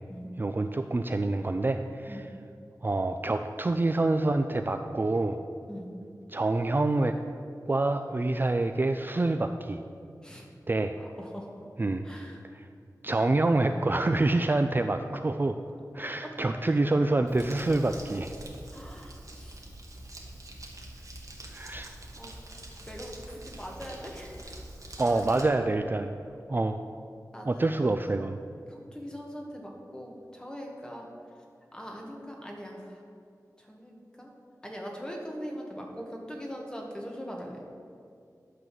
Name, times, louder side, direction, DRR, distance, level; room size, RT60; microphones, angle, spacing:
voice 1, 0.4-2.3 2.8-5.4 6.3-7.1 7.7-9.8 10.7-11.0 11.8-12.0 12.5-12.7 13.0-15.6 15.9-18.3 21.5-21.9 25.0-26.1 26.5-26.8 27.5-28.4, right 2 dB, 30° right, 7 dB, 0.4 m, -27 dB
voice 2, 11.0-11.5 12.0-12.4 16.2-16.3 16.6-16.8 18.7-19.6 21.7-22.3 22.9-24.3 25.0-25.7 27.3-27.7 28.7-31.1 31.7-33.0 33.6-34.3 34.6-37.6, equal, 10° left, 0 dB, 1.8 m, -41 dB
Crumpling crinkling, 17.3-25.4, right 1 dB, 55° right, 1.6 m, -45 dB
12.0 x 4.0 x 7.7 m, 2.4 s
wide cardioid pair, 70°, 7 cm